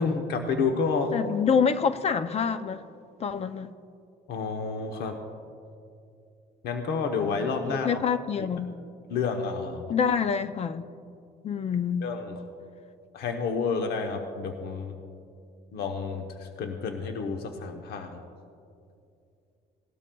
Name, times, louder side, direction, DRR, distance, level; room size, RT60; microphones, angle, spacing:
voice 1, 0.0-1.1 4.3-5.2 6.6-8.0 9.1-9.9 12.0-12.4 13.1-15.0 15.7-18.2, left 5 dB, 70° left, 0.9 m, -30 dB
voice 2, 1.1-2.8 3.2-3.7 7.7-8.8 9.9-10.8 11.4-12.1, left 6 dB, 40° left, 0.5 m, -26 dB
18.0 x 12.5 x 2.3 m
cardioid pair, 110°, 17 cm